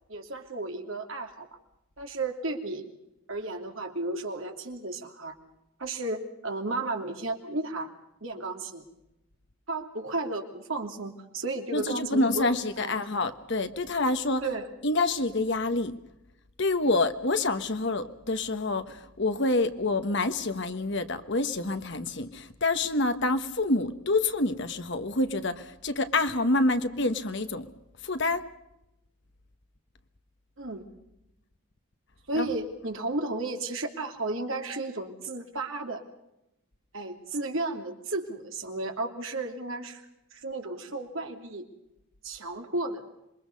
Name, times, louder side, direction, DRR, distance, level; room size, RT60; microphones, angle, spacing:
voice 1, 0.1-1.5 2.0-2.9 3.3-5.3 5.8-7.9 8.2-8.8 9.7-12.5 12.8-12.9 14.4-14.7 30.6-30.8 32.3-36.0 36.9-40.0 40.3-41.7 42.2-43.1, right 2 dB, 65° right, 4 dB, 2.9 m, -33 dB
voice 2, 11.7-14.5 14.8-15.9 16.6-27.7 28.0-28.4 32.3-32.5, left 2 dB, 55° left, 9 dB, 1.4 m, -27 dB
27.0 x 22.5 x 5.4 m, 0.89 s
head